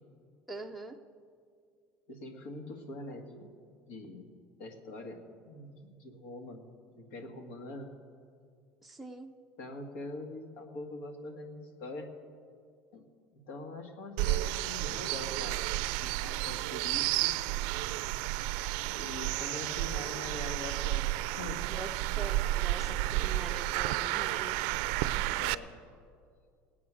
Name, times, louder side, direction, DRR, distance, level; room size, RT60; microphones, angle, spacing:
voice 1, 0.5-1.0 8.8-9.3 21.7-24.7, right 2 dB, ahead, 1 dB, 0.5 m, -44 dB
voice 2, 2.1-3.5 3.9-6.7 6.9-7.9 9.6-12.1 12.9-13.0 13.5-15.6 16.0-17.4 19.0-21.7 25.3-25.8, left 2 dB, 85° left, 4 dB, 1.8 m, -44 dB
sound 1, 14.2-25.5, right 16 dB, 75° right, 0.4 m, -32 dB
19.0 x 8.5 x 6.2 m, 2.3 s
cardioid pair, 150°, 6 cm